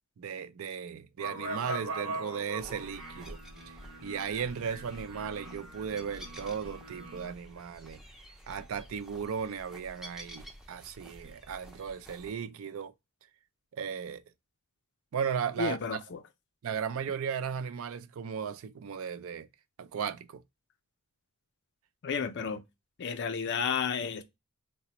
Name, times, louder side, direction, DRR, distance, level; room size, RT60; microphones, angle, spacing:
voice 1, 0.2-3.4 4.0-8.0 8.5-12.9 13.7-14.2 15.1-16.0 16.6-19.5 19.8-20.4, right 7 dB, 65° right, 0.4 m, -36 dB
sound 1, 1.2-7.3, right 2 dB, 80° right, 1.0 m, -41 dB
sound 2, 2.6-12.3, equal, ahead, 0.5 m, -50 dB
voice 2, 15.6-16.2 22.0-22.6 23.0-24.2, left 6 dB, 50° left, 0.4 m, -32 dB
3.9 x 2.1 x 2.8 m
head